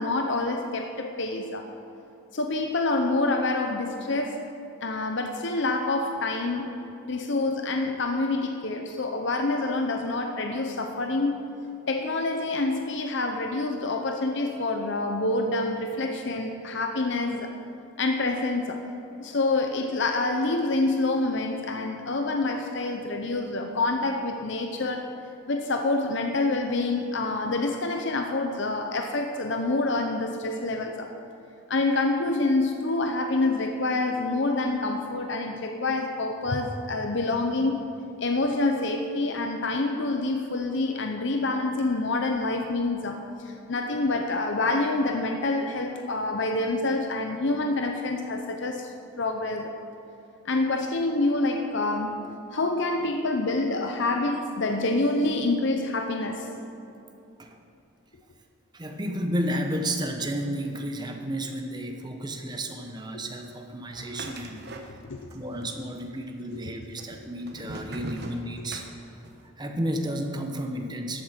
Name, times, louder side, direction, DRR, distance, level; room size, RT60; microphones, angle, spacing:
voice 1, 0.0-1.7 2.3-4.5 4.8-6.7 7.0-11.4 11.9-17.5 18.0-18.9 19.2-25.0 25.5-31.1 31.7-37.8 38.2-48.9 49.2-49.8 50.4-56.5 65.0-65.3, left 2 dB, 55° left, 4 dB, 0.7 m, -27 dB
voice 2, 58.7-64.6 65.3-68.8 69.6-71.2, equal, 20° right, 3 dB, 0.9 m, -32 dB
sound 1, 63.9-65.4 65.6-66.4 67.0-69.5, right 1 dB, 50° right, 1.0 m, -40 dB
13.0 x 8.4 x 6.0 m, 2.8 s
head